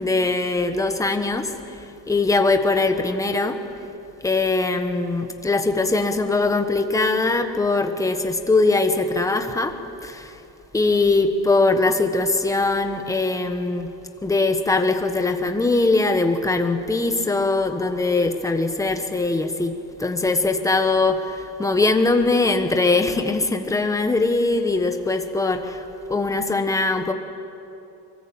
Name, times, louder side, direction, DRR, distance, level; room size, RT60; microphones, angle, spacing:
voice 1, 0.0-3.6 4.2-9.7 10.0-10.4 10.7-13.9 14.2-19.7 20.0-25.8 26.1-27.1, left 3 dB, 5° left, 6 dB, 1.2 m, -21 dB
24.0 x 23.5 x 8.7 m, 2.7 s
cardioid pair, 180°, 46 cm